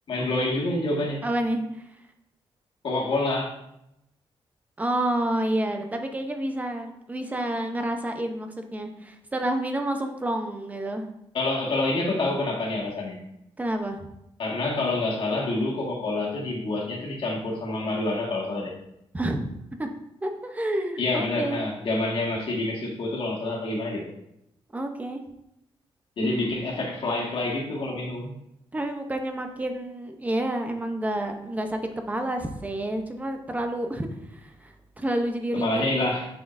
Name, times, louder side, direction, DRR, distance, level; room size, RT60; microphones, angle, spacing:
voice 1, 0.1-1.2 2.8-3.5 11.3-13.2 14.4-18.7 21.0-24.1 26.2-28.3 35.5-36.3, left 2 dB, 60° left, -2 dB, 1.8 m, -27 dB
voice 2, 1.2-1.6 4.8-11.1 13.6-14.0 19.1-19.5 19.8-19.9 20.2-21.6 24.7-25.2 28.7-31.8 32.1-34.1 34.3-35.8, right 1 dB, 15° right, 5 dB, 0.7 m, -29 dB
7.5 x 6.1 x 2.6 m, 0.81 s
wide cardioid pair, 160°, 10 cm